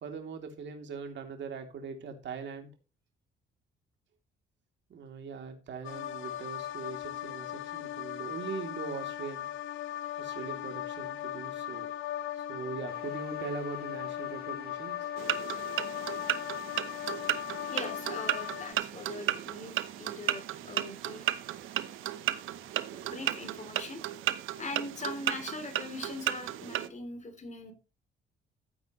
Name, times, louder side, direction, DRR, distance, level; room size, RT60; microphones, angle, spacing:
voice 1, 0.0-2.7 4.9-9.5 10.2-11.9 12.3-15.1, right 5 dB, 65° right, 5 dB, 3.0 m, -41 dB
sound 1, 5.8-18.7, left 12 dB, 80° left, 0.8 m, -38 dB
sound 2, 12.9-23.7, right 5 dB, 50° right, 3.6 m, -57 dB
sound 3, 15.2-26.9, right 13 dB, 85° right, 0.9 m, -34 dB
voice 2, 17.7-21.2 22.9-24.0 24.6-27.7, left 3 dB, 35° left, 7 dB, 3.3 m, -41 dB
14.5 x 8.6 x 3.1 m, 0.30 s
cardioid pair, 90°, 20 cm